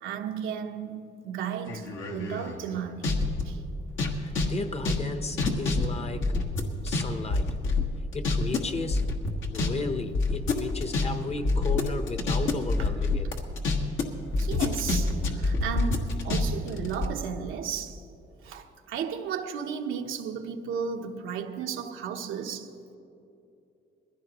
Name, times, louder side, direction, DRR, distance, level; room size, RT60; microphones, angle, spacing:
voice 1, 0.0-3.6 14.4-18.0 18.4-23.0, right 7 dB, 90° right, 0.9 m, -34 dB
sound 1, 1.7-3.4 3.9-7.0 7.3-8.6 8.9-9.7 10.0-14.0 14.3-17.1, left 3 dB, 80° left, 1.5 m, -26 dB
voice 2, 4.1-6.4 6.8-7.6 8.1-9.0 9.5-13.3, left 3 dB, 30° left, 0.8 m, -34 dB
21.0 x 15.0 x 3.0 m
cardioid pair, 90°, 20 cm